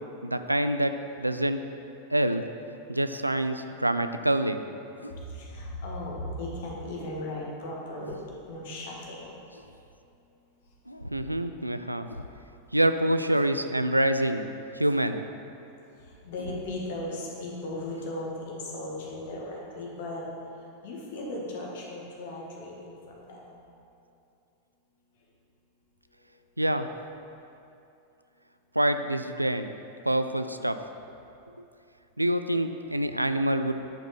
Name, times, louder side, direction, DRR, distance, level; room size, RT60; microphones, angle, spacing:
voice 1, 0.2-1.6 2.1-2.4 2.9-4.6 11.1-12.1 12.7-14.5 14.8-15.3 26.6-26.9 28.8-29.7 30.1-30.8 31.6-31.7 32.2-33.8, right 1 dB, 85° right, 9 dB, 0.3 m, -26 dB
sound 1, 5.0-5.2 6.5-7.1 8.0-8.4 9.5-9.8 10.8-11.4 12.1-12.4 13.3-13.5 14.8-15.1 16.4-16.7 17.9-18.1, left 1 dB, 90° left, 0.4 m, -44 dB
voice 2, 5.2-9.4 15.8-20.2 20.8-23.6, left 1 dB, 55° left, -3 dB, 1.8 m, -37 dB
10.5 x 5.3 x 4.4 m, 2.7 s
figure-of-eight pair, 90°, 0 cm